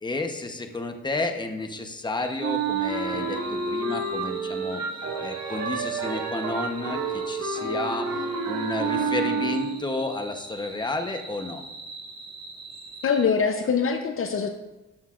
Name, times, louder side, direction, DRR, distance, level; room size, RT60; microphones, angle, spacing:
voice 1, 0.0-4.8 5.2-7.0 7.3-8.1 8.5-11.6, left 2 dB, 15° left, 5 dB, 0.9 m, -31 dB
sound 1, 2.2-13.2, right 2 dB, 15° right, 1.5 m, -44 dB
Wind instrument woodwind instrument, 2.4-10.0, right 4 dB, 55° right, 1.7 m, -30 dB
sound 2, 3.0-9.6, right 4 dB, 80° right, 1.9 m, -36 dB
voice 2, 13.0-14.5, left 6 dB, 45° left, 6 dB, 0.7 m, -23 dB
13.5 x 8.0 x 2.5 m, 1.1 s
cardioid pair, 90°, 30 cm